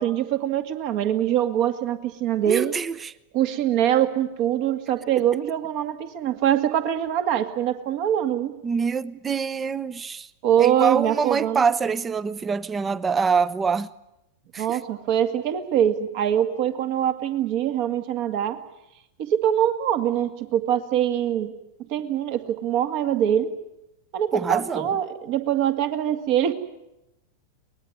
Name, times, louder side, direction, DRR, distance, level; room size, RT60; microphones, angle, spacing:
voice 1, 0.0-2.7 3.3-8.5 10.4-11.6 14.6-18.6 19.2-21.5 21.9-23.5 24.1-26.5, right 10 dB, 45° right, 2.1 m, -23 dB
voice 2, 2.5-3.1 8.6-10.3 10.6-13.9 14.5-14.8 24.3-25.0, right 5 dB, 20° right, 0.8 m, -25 dB
23.0 x 20.0 x 9.6 m
figure-of-eight pair, 90°, 0 cm